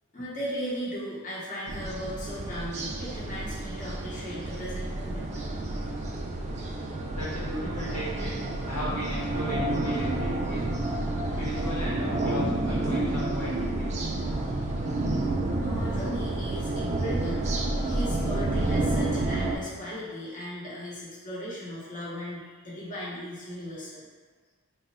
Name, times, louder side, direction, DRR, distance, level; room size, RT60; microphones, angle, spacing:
voice 1, 0.1-5.3 14.8-15.3 15.6-17.6 17.8-24.0, equal, 35° left, -7 dB, 0.9 m, -37 dB
sound 1, 1.7-19.6, right 2 dB, 30° right, 0.3 m, -29 dB
voice 2, 6.3-8.4 8.7-10.6 11.4-13.9, equal, 85° left, -8 dB, 1.3 m, -37 dB
2.9 x 2.3 x 4.1 m, 1.5 s
head